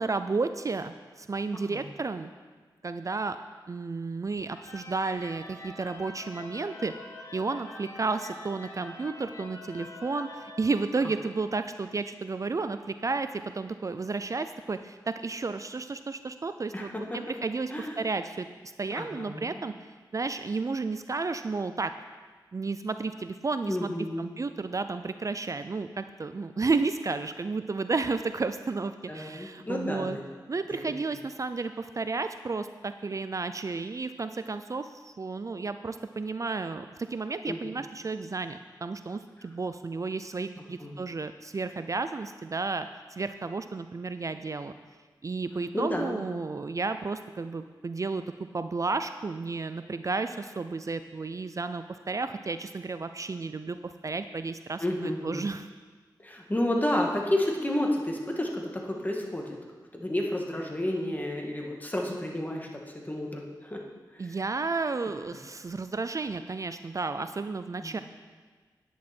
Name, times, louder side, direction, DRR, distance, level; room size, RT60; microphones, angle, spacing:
voice 1, 0.0-2.3 2.8-3.4 3.7-6.9 7.3-18.5 18.8-19.7 20.1-21.9 22.5-23.9 24.2-30.2 30.5-44.7 45.2-48.2 48.5-55.7 64.2-68.0, right 3 dB, 45° right, 10 dB, 0.4 m, -32 dB
sound 1, 4.4-11.4, left 1 dB, 40° left, 2.0 m, -46 dB
voice 2, 16.7-17.2 17.7-18.0 18.9-19.6 23.7-24.3 29.1-30.2 30.7-30.9 37.5-37.6 40.8-40.9 45.7-46.2 54.8-55.5 56.2-59.5 59.9-62.7 62.9-63.8 64.1-64.3 67.8-67.9, left 1 dB, 20° left, 0 dB, 2.0 m, -31 dB
10.0 x 9.5 x 4.4 m, 1.4 s
cardioid pair, 50°, 8 cm